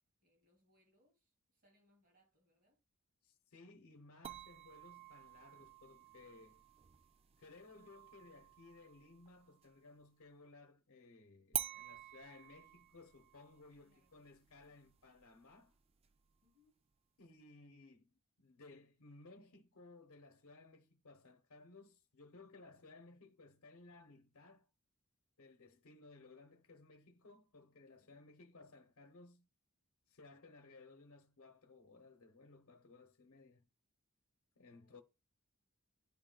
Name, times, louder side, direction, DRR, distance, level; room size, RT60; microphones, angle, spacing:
voice 1, 0.0-2.8 13.8-14.2 16.4-16.8 28.0-28.3 34.7-35.0, left 1 dB, 55° right, 2.2 m, -76 dB
voice 2, 3.2-6.6 7.4-15.7 17.2-24.7 25.4-29.5 30.1-33.6 34.6-35.0, left 3 dB, 80° left, 0.8 m, -60 dB
sound 1, 4.2-9.8 11.5-16.5, right 10 dB, 30° right, 0.3 m, -49 dB
11.0 x 3.8 x 2.3 m
head